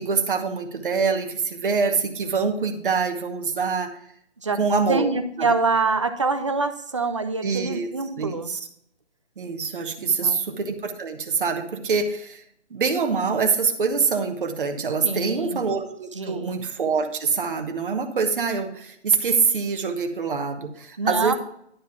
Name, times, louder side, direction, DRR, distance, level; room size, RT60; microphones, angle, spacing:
voice 1, 0.0-3.9 4.6-5.0 5.4-5.5 7.4-7.9 8.2-8.6 9.4-12.4 12.7-21.3, right 5 dB, 50° right, 4 dB, 1.1 m, -25 dB
voice 2, 4.9-8.5 10.0-10.4 15.0-15.6 16.1-16.5 21.0-21.3, right 3 dB, 30° right, 8 dB, 0.5 m, -25 dB
10.0 x 4.7 x 5.7 m, 0.70 s
figure-of-eight pair, 160°, 34 cm